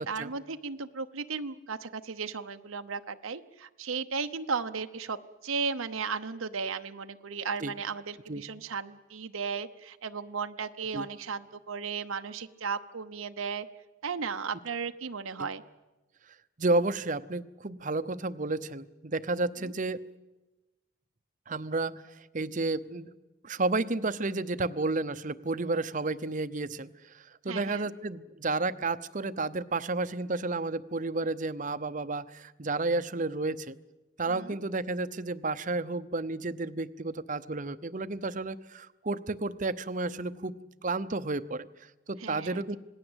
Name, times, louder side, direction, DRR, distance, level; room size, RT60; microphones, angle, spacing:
voice 1, 0.0-5.2 5.4-13.7 14.0-15.6 27.5-27.9 34.3-34.6 42.2-42.8, right 5 dB, 80° right, 7 dB, 0.9 m, -35 dB
voice 2, 16.6-20.0 21.5-23.1 23.4-33.8 34.2-42.8, right 3 dB, 40° right, 13 dB, 0.7 m, -32 dB
27.0 x 19.0 x 8.1 m, 1.1 s
head